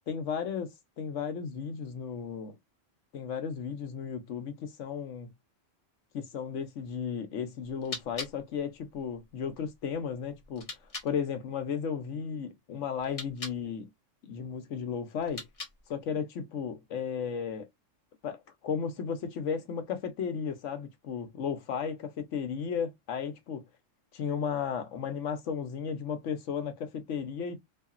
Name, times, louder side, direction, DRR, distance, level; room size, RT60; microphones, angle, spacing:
voice 1, 0.1-2.6 3.1-5.3 6.1-10.8 11.0-13.9 14.2-15.5 15.9-17.7 18.2-23.7 24.1-27.6, left 7 dB, 70° left, 1.0 m, -34 dB
sound 1, 7.6-11.1 13.0-13.6 15.2-16.0, left 3 dB, 30° left, 0.8 m, -44 dB
2.8 x 2.7 x 2.3 m
omnidirectional pair, 1.3 m